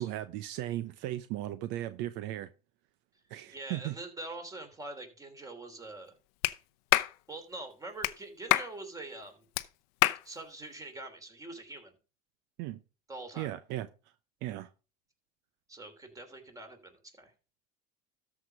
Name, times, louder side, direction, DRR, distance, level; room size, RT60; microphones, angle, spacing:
voice 1, 0.0-2.5 3.3-3.9 12.6-12.8 13.4-13.9 14.4-14.7, right 14 dB, 70° right, 0.7 m, -36 dB
voice 2, 3.5-6.2 7.3-9.5 10.2-12.0 13.1-13.5 15.7-17.3, right 2 dB, 15° right, 3.0 m, -44 dB
Clapping, 6.4-6.6 6.9-7.1 8.0-8.1 8.5-8.7 9.6-9.7 10.0-10.2, left 19 dB, 80° left, 0.7 m, -25 dB
13.5 x 5.0 x 5.2 m
supercardioid pair, 105°, 19 cm